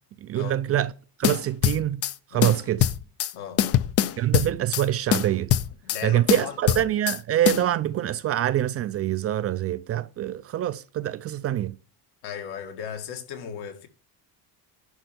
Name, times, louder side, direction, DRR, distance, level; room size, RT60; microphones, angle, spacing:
voice 1, 0.2-0.9 1.2-2.0 2.3-2.9 4.2-5.5 6.0-11.8, right 12 dB, 35° right, 0.4 m, -25 dB
sound 1, 1.2-2.1 2.4-3.3 3.6-4.9 5.1-6.0 6.3-7.2 7.5-7.6, left 11 dB, 40° left, 0.4 m, -23 dB
voice 2, 3.3-3.8 5.8-6.6 12.2-13.9, left 8 dB, 75° left, 2.1 m, -36 dB
11.0 x 4.3 x 7.8 m
cardioid pair, 160°, 40 cm